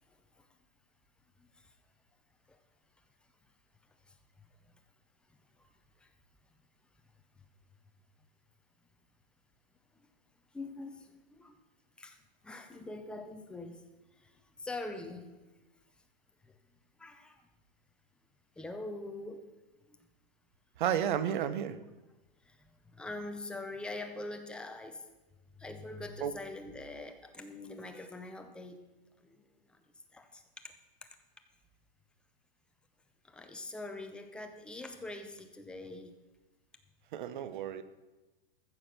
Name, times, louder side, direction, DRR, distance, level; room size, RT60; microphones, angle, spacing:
voice 1, 0.1-0.5 1.4-1.7 2.5-2.6 3.9-4.2 4.6-4.7 5.3-5.7 6.0-6.1 7.4-7.5 9.9-10.1 10.5-11.6 12.0-13.9 14.1-15.6 16.4-16.6 17.0-17.5 18.6-19.5 19.8-20.0 22.4-25.1 25.5-28.8 29.2-29.8 30.1-30.7 31.0-31.1 33.2-36.2, left 2 dB, 5° left, 6 dB, 0.5 m, -44 dB
voice 2, 20.8-21.8 26.2-26.3 37.1-37.8, right 10 dB, 55° right, 13 dB, 1.0 m, -32 dB
14.5 x 6.5 x 5.8 m, 1.1 s
supercardioid pair, 160°, 29 cm